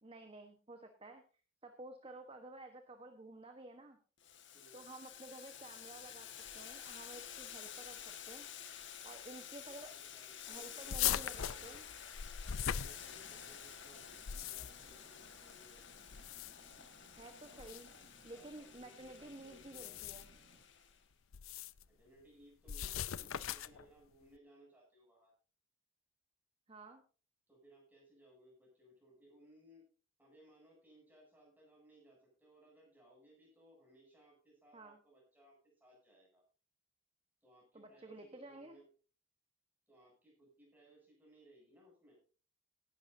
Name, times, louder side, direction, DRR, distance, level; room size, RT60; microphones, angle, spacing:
voice 1, 0.0-1.2 1.6-4.0 4.7-6.3 6.5-8.5 9.0-9.9 10.5-11.8 17.1-17.9 18.2-20.3 26.7-27.0 34.7-35.0 37.7-38.8, right 2 dB, 25° right, 5 dB, 1.2 m, -52 dB
Boiling, 4.2-21.0, left 9 dB, 60° left, 1.7 m, -51 dB
voice 2, 4.5-4.8 9.6-11.8 12.4-15.8 17.4-17.8 18.3-20.1 21.8-25.3 27.5-29.9 30.2-36.4 37.4-38.9 39.9-42.2, right 1 dB, 10° right, -3 dB, 8.0 m, -64 dB
sound 1, 10.9-13.5 14.1-14.9 16.1-16.8 17.6-17.8 19.6-20.4 21.3-21.8 22.7-23.8, left 10 dB, 85° left, 0.6 m, -39 dB
sound 2, 12.7-20.7, right 2 dB, 45° right, 1.0 m, -66 dB
18.0 x 11.5 x 2.7 m, 0.37 s
head